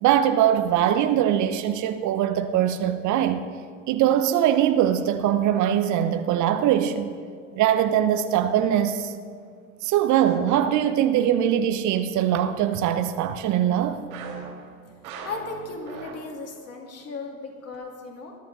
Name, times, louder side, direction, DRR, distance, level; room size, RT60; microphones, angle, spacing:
voice 1, 0.0-3.4 3.9-7.1 7.6-9.1 9.8-14.0, right 10 dB, 45° right, 0.9 m, -22 dB
sound 1, 10.2-11.3 14.1-16.6 16.9-17.0 17.7-17.8, right 5 dB, 70° right, 3.6 m, -41 dB
voice 2, 15.2-18.4, left 3 dB, 35° left, 2.9 m, -36 dB
20.5 x 11.5 x 4.1 m
hypercardioid pair, 75°, 41 cm